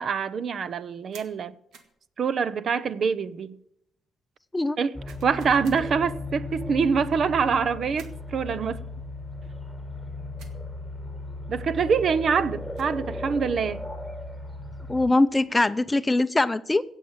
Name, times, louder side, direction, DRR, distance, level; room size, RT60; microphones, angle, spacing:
voice 1, 0.0-1.5 2.2-3.6 4.8-4.9 5.2-8.8 11.5-13.8, right 6 dB, 55° right, 0.7 m, -25 dB
sound 1, 1.1-1.3 1.7-2.0 5.1-5.9 8.0-8.3 10.4-10.6 12.5-13.0, right 5 dB, 85° right, 2.1 m, -50 dB
sound 2, 4.9-15.1, left 2 dB, 5° right, 1.8 m, -36 dB
voice 2, 14.9-16.8, left 2 dB, 15° left, 0.6 m, -22 dB
16.5 x 7.4 x 7.4 m
cardioid pair, 90°, 0 cm